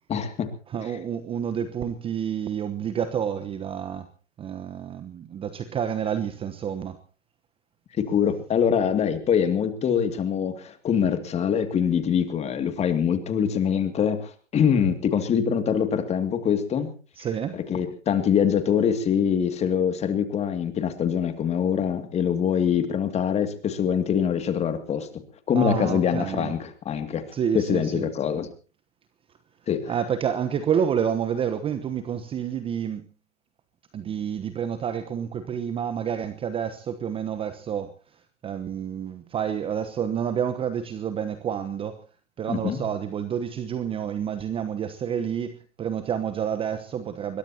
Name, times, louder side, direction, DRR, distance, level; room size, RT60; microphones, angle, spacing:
voice 1, 0.1-0.5 8.0-16.9 17.5-25.1 25.5-27.2 27.5-28.5 29.7-29.9 42.5-42.8, left 8 dB, 20° left, 2.5 m, -24 dB
voice 2, 0.7-4.1 4.4-7.0 17.2-17.6 25.5-26.5 27.3-28.1 29.9-33.1 33.9-37.9 38.4-42.0 42.4-47.4, right 8 dB, 15° right, 1.1 m, -29 dB
22.0 x 22.0 x 2.9 m
hypercardioid pair, 130°, 36 cm